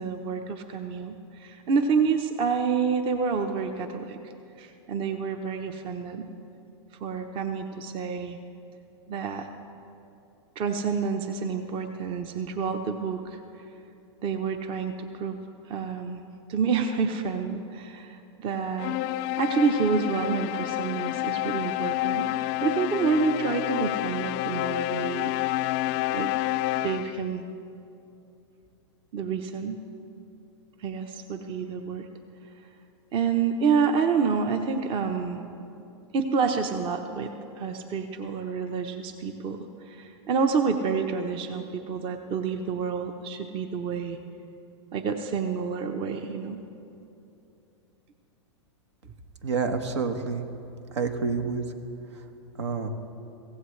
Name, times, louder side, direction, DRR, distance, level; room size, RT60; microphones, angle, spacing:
voice 1, 0.0-4.2 4.6-6.3 7.0-8.4 9.1-9.5 10.6-13.4 14.2-15.4 15.7-16.2 16.5-19.0 19.4-25.3 26.1-26.3 26.8-27.4 29.1-29.8 30.8-32.1 33.1-35.4 36.1-37.3 37.6-44.2 44.9-46.6, right 5 dB, 35° right, 6 dB, 1.0 m, -28 dB
sound 1, 18.8-27.3, left 16 dB, 40° left, 0.4 m, -29 dB
voice 2, 49.4-50.5 50.9-51.6 52.1-52.2 52.6-52.9, right 5 dB, 75° right, 6 dB, 1.5 m, -28 dB
24.5 x 16.0 x 3.3 m, 2.8 s
hypercardioid pair, 110°, 15 cm